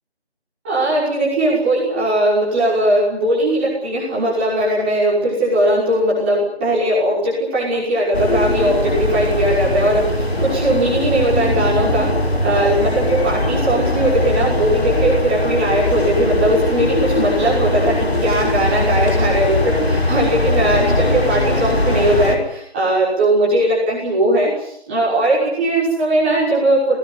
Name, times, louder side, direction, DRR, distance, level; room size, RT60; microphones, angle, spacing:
voice 1, 0.6-12.1 12.4-27.0, right 1 dB, 10° right, -7 dB, 6.1 m, -18 dB
sound 1, 8.1-22.4, left 1 dB, 70° left, 5.1 m, -20 dB
21.5 x 19.5 x 9.9 m, 0.72 s
figure-of-eight pair, 170°, 32 cm